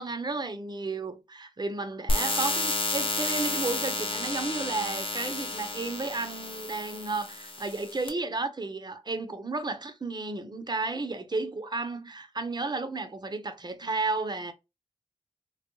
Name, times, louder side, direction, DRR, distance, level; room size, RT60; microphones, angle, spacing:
voice 1, 0.0-14.5, right 3 dB, 35° right, 0.7 m, -33 dB
sound 1, 2.1-8.1, left 2 dB, 45° left, 0.8 m, -31 dB
3.4 x 2.2 x 3.0 m
cardioid pair, 50°, 12 cm